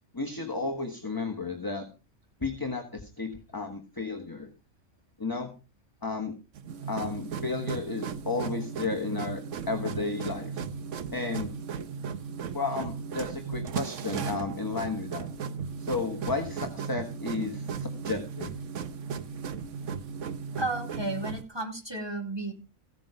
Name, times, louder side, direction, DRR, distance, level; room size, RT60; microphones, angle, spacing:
voice 1, 0.1-1.9 2.4-4.5 5.2-5.5 6.0-6.3 6.9-10.6 11.1-11.5 12.5-15.3 15.8-18.5, left 3 dB, 15° left, 4 dB, 1.6 m, -33 dB
sound 1, 6.5-21.4, right 6 dB, 65° right, 1.2 m, -36 dB
voice 2, 20.6-22.5, right 2 dB, 20° right, 3 dB, 2.6 m, -33 dB
16.0 x 9.1 x 5.1 m, 0.31 s
omnidirectional pair, 1.4 m